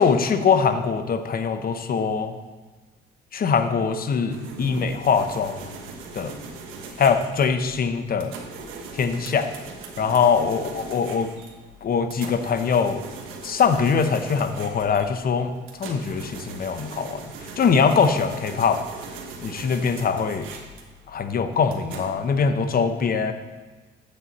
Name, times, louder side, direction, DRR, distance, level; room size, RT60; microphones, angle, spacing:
voice 1, 0.0-2.4 3.3-5.6 6.1-6.4 7.0-8.3 8.9-9.5 10.0-11.3 11.8-13.0 13.4-15.5 15.8-17.2 17.6-18.8 19.4-20.5 21.1-23.3, left 6 dB, 50° left, 9 dB, 0.8 m, -22 dB
sound 1, 4.3-22.1, right 4 dB, 90° right, 1.3 m, -40 dB
8.4 x 7.5 x 4.2 m, 1.3 s
cardioid pair, 90°, 20 cm